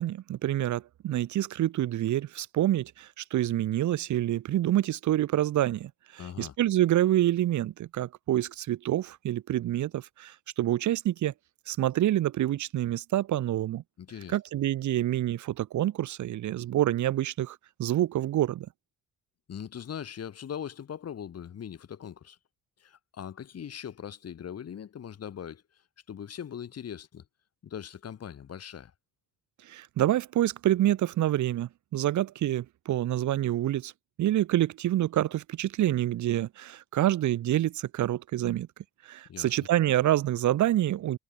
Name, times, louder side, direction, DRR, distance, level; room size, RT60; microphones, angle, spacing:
voice 1, 0.0-11.3 11.7-13.8 14.3-18.7 29.6-33.9 34.2-38.7 39.0-41.2, right 13 dB, 70° right, 1.4 m, -27 dB
voice 2, 6.2-6.6 14.0-14.4 19.5-22.4 22.8-25.8 26.1-27.2 27.6-28.9 39.3-39.7, left 8 dB, 55° left, 3.7 m, -40 dB
cardioid pair, 90°, 30 cm